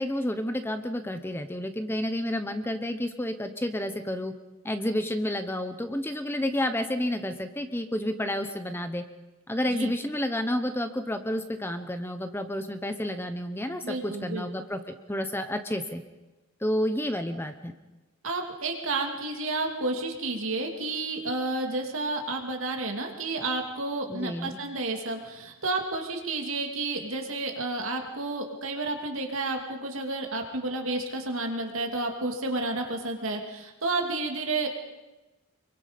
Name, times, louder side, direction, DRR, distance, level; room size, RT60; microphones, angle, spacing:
voice 1, 0.0-4.3 4.6-9.0 9.5-16.0 16.6-17.7 24.1-24.6, left 1 dB, 10° left, 8 dB, 1.0 m, -30 dB
voice 2, 13.8-14.5 18.2-34.7, right 2 dB, 70° right, 2 dB, 2.7 m, -31 dB
25.5 x 23.5 x 5.3 m, 1.1 s
head